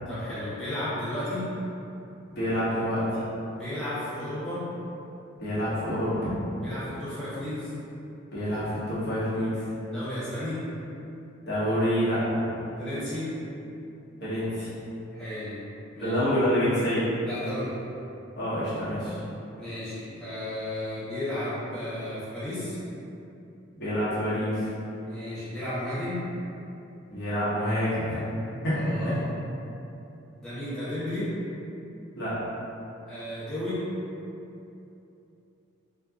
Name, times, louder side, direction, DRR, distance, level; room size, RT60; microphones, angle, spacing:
voice 1, 0.1-1.5 3.5-4.6 6.6-7.7 9.8-10.6 12.8-13.3 15.1-15.6 15.9-16.2 17.2-17.7 19.6-22.8 25.0-26.2 28.7-29.2 30.4-31.3 33.1-33.8, left 1 dB, ahead, -14 dB, 0.8 m, -33 dB
voice 2, 2.3-3.2 5.4-6.3 8.3-9.7 11.5-12.5 14.2-14.7 16.0-17.1 18.4-19.2 23.7-24.6 27.1-28.2 28.6-29.1 32.2-32.3, equal, 55° left, -11 dB, 1.0 m, -27 dB
2.6 x 2.3 x 3.5 m, 2.8 s
head